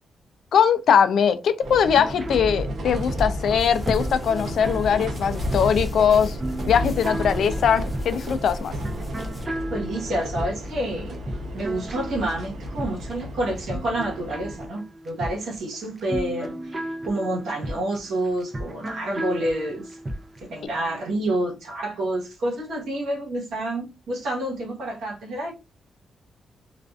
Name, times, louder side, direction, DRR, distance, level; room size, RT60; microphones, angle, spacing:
voice 1, 0.5-6.4 6.7-8.7, left 7 dB, 75° left, 0.3 m, -21 dB
sound 1, 1.6-14.7, equal, 70° right, 0.7 m, -33 dB
sound 2, 1.9-20.5, right 1 dB, 30° right, 0.5 m, -35 dB
sound 3, 2.9-9.5, left 1 dB, 20° left, 0.6 m, -34 dB
voice 2, 9.5-11.2 11.5-20.0 20.4-25.5, right 1 dB, 90° right, 1.0 m, -28 dB
2.4 x 2.4 x 2.3 m
cardioid pair, 105°, 0 cm